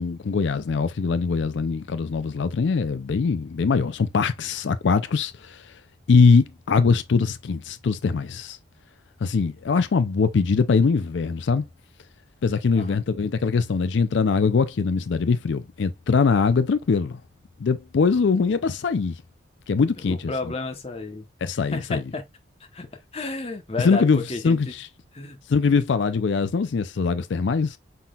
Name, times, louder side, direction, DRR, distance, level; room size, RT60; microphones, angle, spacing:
voice 1, 0.0-5.7 6.1-8.6 9.2-11.7 12.4-17.2 17.6-19.2 19.7-20.3 21.4-22.0 23.8-24.9 25.5-27.8, left 5 dB, 70° left, 0.4 m, -22 dB
voice 2, 20.1-21.3 21.5-22.2 22.6-22.9 23.1-24.7 25.1-25.4, left 3 dB, 30° left, 0.9 m, -32 dB
5.7 x 3.8 x 2.3 m
head